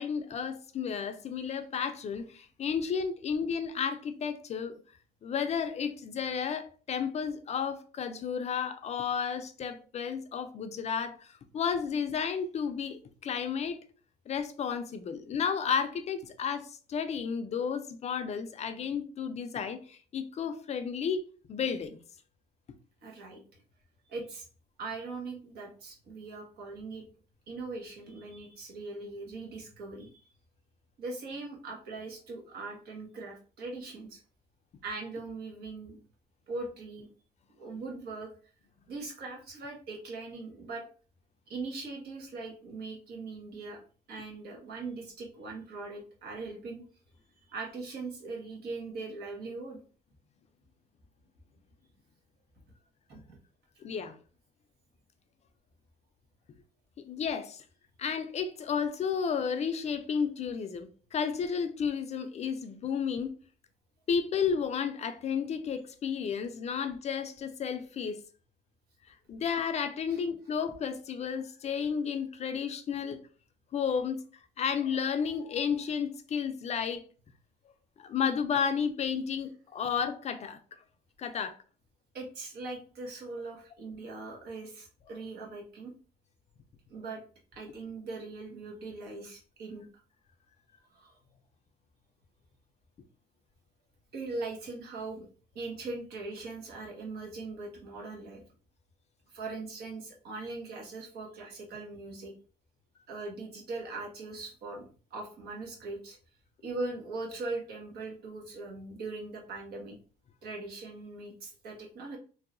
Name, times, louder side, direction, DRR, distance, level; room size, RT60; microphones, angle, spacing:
voice 1, 0.0-4.7 5.2-13.8 14.3-21.2 21.5-22.0 53.8-54.2 57.1-57.6 58.0-63.3 64.1-68.2 69.3-73.2 73.7-74.2 74.6-77.0 78.0-80.6 81.2-81.6, left 6 dB, 40° left, 0.4 m, -32 dB
voice 2, 23.0-23.6 24.1-24.4 24.8-27.0 27.5-30.3 31.0-34.2 34.8-36.0 36.5-37.1 37.6-38.3 38.9-40.8 41.5-43.8 44.1-46.8 47.5-49.8 53.1-53.4 70.1-70.2 82.1-85.9 86.9-87.2 87.5-89.9 90.9-91.2 94.1-95.3 95.5-98.4 99.3-102.3 103.1-104.8 105.1-106.2 106.6-110.0 110.4-112.2, right 3 dB, 70° right, 1.3 m, -40 dB
3.1 x 2.7 x 2.5 m
cardioid pair, 110°, 17 cm